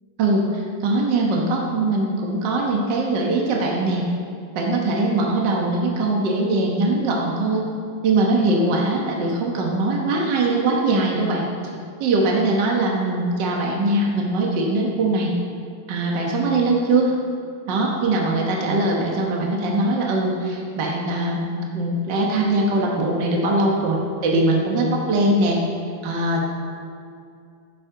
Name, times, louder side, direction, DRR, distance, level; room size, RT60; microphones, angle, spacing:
voice 1, 0.2-4.1 4.5-7.6 8.0-11.5 12.0-15.3 15.9-17.1 17.7-25.6 26.0-26.5, right 2 dB, 65° right, -2 dB, 1.1 m, -21 dB
14.0 x 11.0 x 3.9 m, 2.4 s
omnidirectional pair, 3.9 m